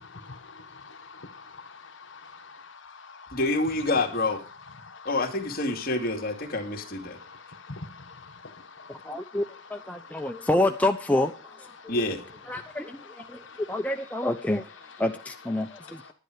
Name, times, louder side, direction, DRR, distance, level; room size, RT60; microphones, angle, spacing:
voice 1, 0.8-3.3 4.8-5.1 7.2-9.4 9.9-10.4 13.3-13.6, left 3 dB, 60° left, 1.3 m, -46 dB
voice 2, 3.3-4.4 5.0-7.2 11.9-12.2, left 2 dB, 45° left, 2.4 m, -27 dB
voice 3, 8.9-11.9 12.5-13.4 13.7-14.7 15.0-16.0, left 1 dB, 5° left, 0.6 m, -28 dB
10.5 x 10.5 x 4.9 m
head